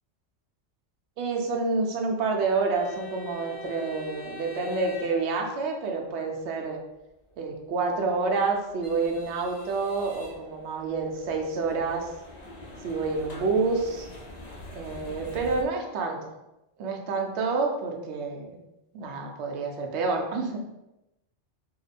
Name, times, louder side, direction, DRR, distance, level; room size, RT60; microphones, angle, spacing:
voice 1, 1.2-6.8 7.4-12.1 12.8-14.1 14.7-16.3 16.8-18.6 18.9-20.7, right 4 dB, 70° right, 1 dB, 0.9 m, -28 dB
sound 1, 2.7-5.9 8.0-15.6, left 1 dB, 70° left, 0.4 m, -44 dB
2.8 x 2.1 x 4.0 m, 0.92 s
omnidirectional pair, 1.2 m